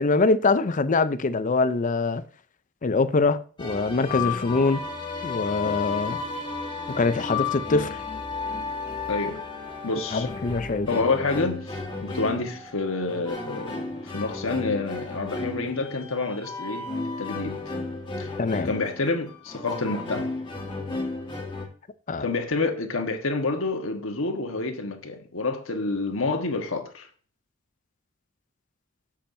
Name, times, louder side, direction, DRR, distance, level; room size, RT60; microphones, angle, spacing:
voice 1, 0.0-2.2 2.8-4.8 5.2-6.2 6.9-8.0 10.1-11.0 18.4-18.7 22.1-22.3, left 3 dB, 40° left, 0.5 m, -24 dB
sound 1, 3.6-21.7, left 4 dB, 25° left, 1.6 m, -33 dB
voice 2, 9.1-9.4 9.8-10.3 10.9-16.9 17.2-17.6 18.2-18.3 18.6-20.3 22.2-27.1, left 3 dB, 75° left, 1.3 m, -28 dB
8.6 x 7.3 x 2.7 m
head